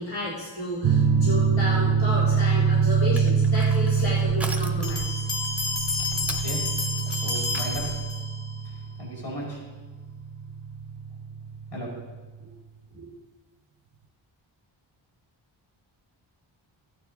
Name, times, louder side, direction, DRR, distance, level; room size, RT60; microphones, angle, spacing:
voice 1, 0.0-5.2, left 1 dB, 80° left, -8 dB, 2.8 m, -32 dB
sound 1, 0.8-12.0, right 5 dB, 45° right, 0.5 m, -25 dB
Crushing, 3.1-8.1, right 1 dB, 5° right, 0.7 m, -40 dB
Bell, 4.8-8.6, left 3 dB, 30° left, 2.4 m, -31 dB
voice 2, 6.1-6.6 7.0-7.8 9.0-9.6 11.7-11.9 12.4-12.5 12.9-13.1, equal, 55° left, -4 dB, 4.6 m, -36 dB
15.5 x 9.4 x 3.8 m, 1.3 s
wide cardioid pair, 165°, 46 cm